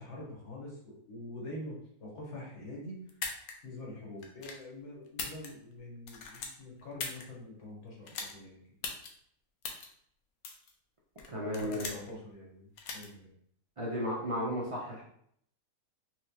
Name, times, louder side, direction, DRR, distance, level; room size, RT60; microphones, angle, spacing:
voice 1, 0.0-3.2 3.6-8.6 11.4-13.3, left 1 dB, 55° left, -3 dB, 1.3 m, -45 dB
sound 1, 3.1-3.5 4.2-4.6 5.1-5.8 6.0-7.2 8.1-8.3 8.8-9.1 9.6-9.9 10.4-10.7 11.2-12.1 12.8-13.1, left 5 dB, 75° left, 1.1 m, -39 dB
voice 2, 11.3-11.9 13.8-15.0, equal, 60° right, -5 dB, 0.3 m, -34 dB
4.4 x 2.0 x 2.8 m, 0.67 s
omnidirectional pair, 1.5 m